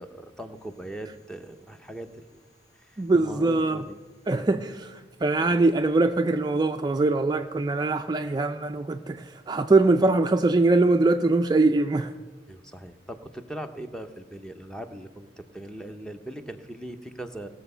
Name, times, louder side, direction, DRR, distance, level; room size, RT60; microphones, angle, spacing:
voice 1, 0.0-2.4 2.8-4.0 12.5-17.5, right 1 dB, 5° left, 7 dB, 0.7 m, -40 dB
voice 2, 3.0-3.8 4.3-12.2, right 2 dB, 25° right, 6 dB, 0.4 m, -22 dB
18.0 x 6.9 x 5.5 m, 1.3 s
head